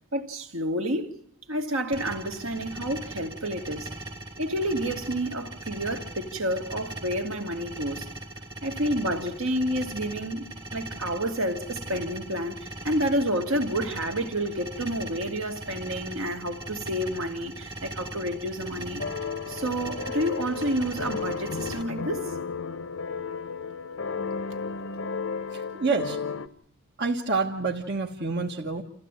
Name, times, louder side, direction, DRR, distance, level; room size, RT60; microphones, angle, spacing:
voice 1, 0.1-1.1 1.5-3.9 4.4-8.1 8.6-10.4 10.7-19.0 19.5-22.3, equal, 65° right, 2.3 m, -29 dB
sound 1, 1.9-21.8, right 2 dB, 20° right, 1.4 m, -40 dB
sound 2, 19.0-26.5, left 5 dB, 65° left, 0.9 m, -33 dB
voice 2, 25.5-26.2 27.0-28.8, right 4 dB, 50° right, 1.5 m, -28 dB
28.5 x 15.0 x 9.1 m
head